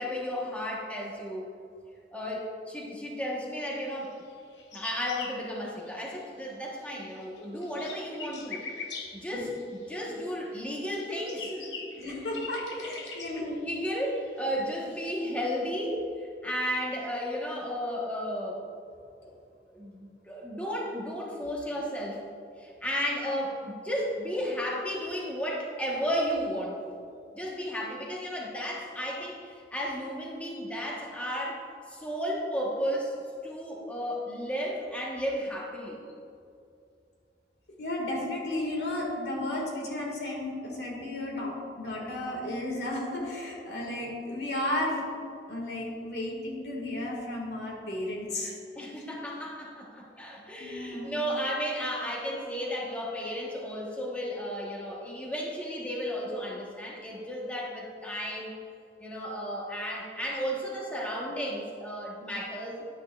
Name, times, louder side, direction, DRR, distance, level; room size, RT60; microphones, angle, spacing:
voice 1, 0.0-1.5 2.1-4.1 4.7-8.7 9.2-9.5 9.9-11.8 12.7-18.6 19.2-19.4 19.7-22.2 22.6-26.9 27.3-31.6 31.9-36.0 48.8-58.5 59.0-62.8, equal, 10° left, -3 dB, 1.1 m, -33 dB
sound 1, 4.2-6.4 6.7-10.3 10.8-15.1, left 4 dB, 85° left, 1.0 m, -43 dB
voice 2, 12.0-13.4 37.8-45.0 45.5-48.5 50.6-51.2, left 1 dB, 65° left, -2 dB, 1.9 m, -33 dB
10.5 x 9.0 x 2.4 m, 2.4 s
head